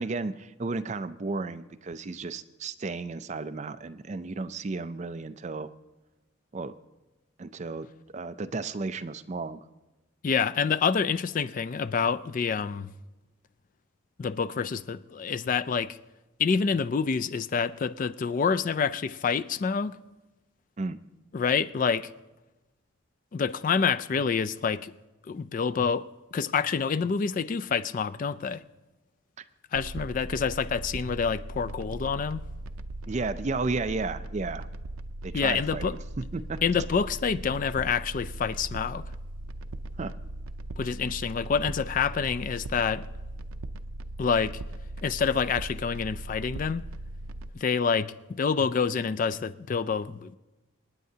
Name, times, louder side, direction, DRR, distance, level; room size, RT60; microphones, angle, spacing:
voice 1, 0.0-5.7 6.5-6.7 7.4-9.6 20.8-21.0 33.1-34.7 35.2-36.0 36.3-36.6 40.0-40.1, right 3 dB, 35° right, 0.4 m, -33 dB
voice 2, 10.2-12.9 14.2-16.0 16.4-20.0 21.3-22.1 23.3-24.9 25.3-28.6 29.7-32.4 35.3-35.9 36.6-39.1 40.8-43.0 44.2-44.6 45.0-46.8 47.5-50.4, left 6 dB, 40° left, 0.3 m, -27 dB
sound 1, 29.7-47.5, right 1 dB, 85° right, 0.5 m, -39 dB
27.5 x 9.4 x 2.8 m
head